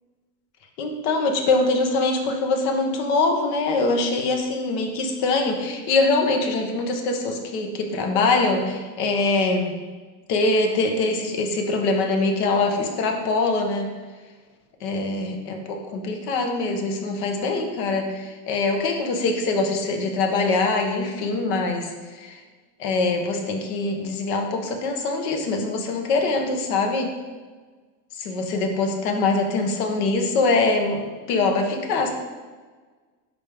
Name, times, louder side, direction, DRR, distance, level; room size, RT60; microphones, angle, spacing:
voice 1, 0.8-9.7 10.3-13.9 14.8-22.4 22.8-27.1 28.2-31.0 31.3-32.1, left 3 dB, 85° left, 3 dB, 1.3 m, -23 dB
10.5 x 3.6 x 3.5 m, 1.4 s
supercardioid pair, 115°, 46 cm